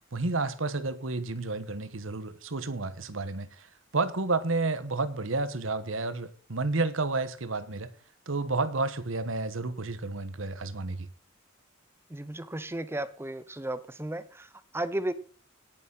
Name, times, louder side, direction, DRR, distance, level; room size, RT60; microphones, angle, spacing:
voice 1, 0.1-3.7 3.9-7.9 8.3-11.1, right 3 dB, 80° right, 14 dB, 1.2 m, -31 dB
voice 2, 12.1-15.1, right 1 dB, 10° right, 15 dB, 0.7 m, -34 dB
17.5 x 7.0 x 5.5 m, 0.42 s
head